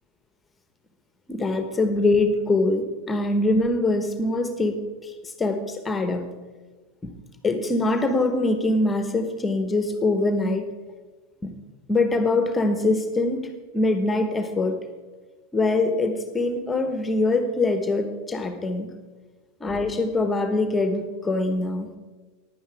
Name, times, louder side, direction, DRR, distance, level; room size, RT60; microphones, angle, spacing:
voice 1, 1.3-6.3 7.0-7.2 7.4-10.7 11.4-11.6 11.9-14.8 15.5-18.9 19.6-21.9, left 2 dB, 15° left, 7 dB, 1.4 m, -23 dB
15.5 x 11.0 x 3.6 m, 1.3 s
figure-of-eight pair, 85°, 0 cm